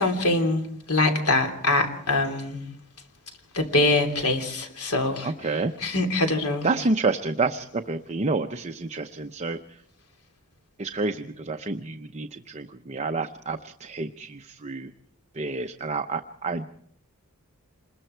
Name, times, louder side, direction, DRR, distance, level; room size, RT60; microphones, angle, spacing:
voice 1, 0.0-2.6 3.5-5.3 5.8-6.7, left 2 dB, 85° left, 5 dB, 3.2 m, -24 dB
voice 2, 5.2-5.7 6.6-9.8 10.8-14.9 15.3-16.6, right 3 dB, 30° right, 7 dB, 0.7 m, -29 dB
27.0 x 21.5 x 4.5 m, 0.66 s
head